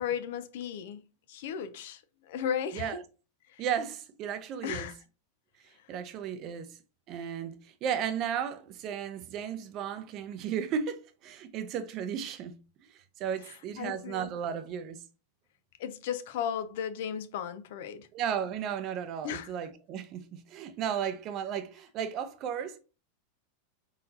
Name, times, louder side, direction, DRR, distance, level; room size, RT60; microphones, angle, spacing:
voice 1, 0.0-3.0 3.5-3.6 4.6-5.0 13.5-14.3 15.8-18.1 19.2-19.5, left 8 dB, 65° left, 0.5 m, -35 dB
voice 2, 3.6-4.9 5.9-6.7 7.1-12.5 13.2-15.0 18.1-22.8, right 8 dB, 35° right, 0.6 m, -34 dB
4.0 x 3.9 x 2.8 m
supercardioid pair, 155°, 0 cm